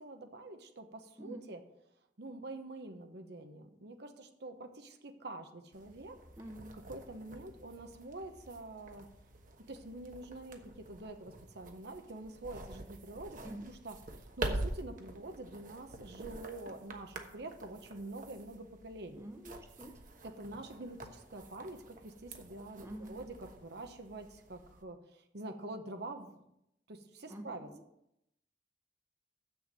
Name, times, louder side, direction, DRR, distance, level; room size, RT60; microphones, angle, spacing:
voice 1, 0.0-1.6 2.2-6.2 6.9-9.1 9.7-14.0 14.4-19.3 20.2-26.3 26.9-27.7, right 2 dB, 65° right, 6 dB, 1.1 m, -46 dB
sound 1, 5.7-24.8, right 2 dB, 50° right, 1.2 m, -46 dB
voice 2, 6.4-6.7 13.4-13.7 19.1-20.0 22.8-23.2 27.3-27.8, right 1 dB, 15° right, 5 dB, 0.9 m, -47 dB
7.2 x 6.9 x 7.6 m, 0.80 s
head